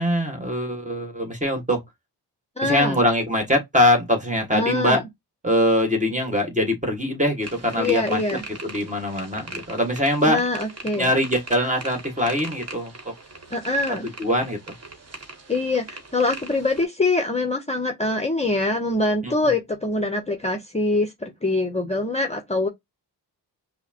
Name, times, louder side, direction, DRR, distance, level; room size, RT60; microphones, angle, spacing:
voice 1, 0.0-1.8 2.6-5.0 5.4-8.2 8.5-10.4 11.0-13.1 14.2-14.6 19.2-19.3, left 1 dB, 20° right, 1.4 m, -22 dB
voice 2, 2.6-3.0 4.5-5.0 7.8-8.4 10.3-11.1 13.5-14.1 15.5-22.7, left 2 dB, 15° left, 0.7 m, -24 dB
sound 1, 7.4-16.8, right 3 dB, 40° right, 1.2 m, -40 dB
5.5 x 2.1 x 2.7 m
wide cardioid pair, 105°, 41 cm